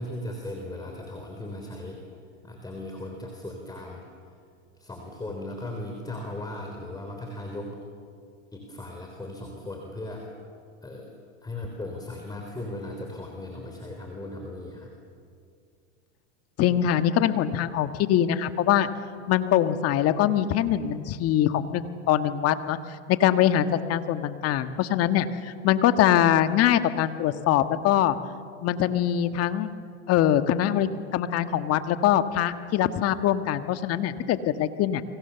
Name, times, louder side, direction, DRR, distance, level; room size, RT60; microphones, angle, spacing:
voice 1, 0.0-2.0 2.4-4.0 4.8-7.8 8.5-10.3 10.8-11.1 11.4-14.9, left 1 dB, 10° left, 2 dB, 3.7 m, -37 dB
voice 2, 16.6-18.9 19.3-22.8 23.1-28.2 28.6-29.7 30.1-35.0, left 11 dB, 45° left, 9 dB, 1.6 m, -23 dB
29.5 x 24.0 x 7.0 m, 2.3 s
hypercardioid pair, 105°, 35 cm